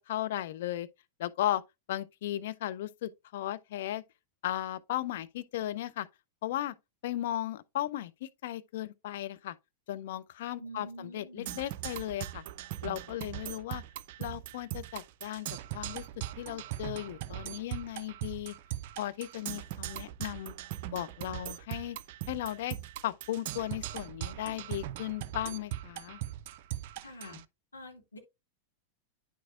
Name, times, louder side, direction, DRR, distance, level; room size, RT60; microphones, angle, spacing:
voice 1, 0.1-0.9 1.2-1.6 1.9-4.0 4.4-6.1 6.4-6.7 7.0-9.5 9.9-12.4 12.8-13.8 14.2-15.5 15.7-16.0 16.4-18.5 19.0-20.5 20.9-22.0 22.3-22.8 23.0-26.2, left 13 dB, 55° left, 0.5 m, -36 dB
voice 2, 10.6-11.6 27.0-27.4 27.7-28.2, equal, 80° left, 1.8 m, -46 dB
Percussion, 11.5-27.4, right 13 dB, 50° right, 0.3 m, -40 dB
9.4 x 5.9 x 2.4 m
figure-of-eight pair, 90°, 0 cm